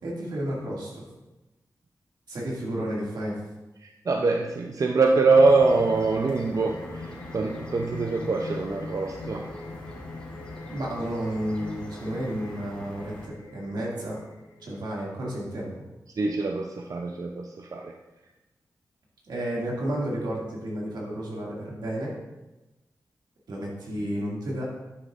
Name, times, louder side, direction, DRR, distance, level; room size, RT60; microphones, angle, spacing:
voice 1, 0.0-1.1 2.3-3.4 10.7-14.2 14.6-15.7 19.3-22.1 23.5-24.7, right 1 dB, 85° right, -4 dB, 2.2 m, -31 dB
voice 2, 3.8-9.5 16.2-17.9, right 3 dB, 55° right, 3 dB, 0.5 m, -24 dB
sound 1, 5.3-15.1, left 3 dB, 70° left, 0.9 m, -41 dB
sound 2, 5.3-13.3, equal, 15° left, 2.2 m, -45 dB
11.0 x 6.5 x 2.5 m, 1.0 s
cardioid pair, 65°, 7 cm